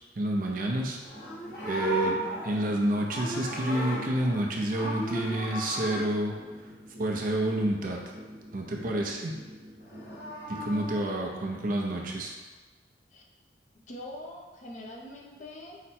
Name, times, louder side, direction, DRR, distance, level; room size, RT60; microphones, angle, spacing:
voice 1, 0.2-1.0 1.7-2.2 2.4-6.3 7.0-8.0 8.5-9.3 10.5-12.3, right 1 dB, 50° right, -1 dB, 0.6 m, -29 dB
Livestock farm animals working animals, 1.0-4.4 4.7-6.0 9.8-11.0, right 1 dB, 60° left, 1.2 m, -35 dB
sound 1, 1.0-11.0, equal, 75° right, 0.9 m, -46 dB
voice 2, 10.8-11.1 13.1-13.2 13.9-15.8, left 1 dB, 45° left, -1 dB, 0.6 m, -43 dB
4.8 x 2.2 x 4.2 m, 1.3 s
head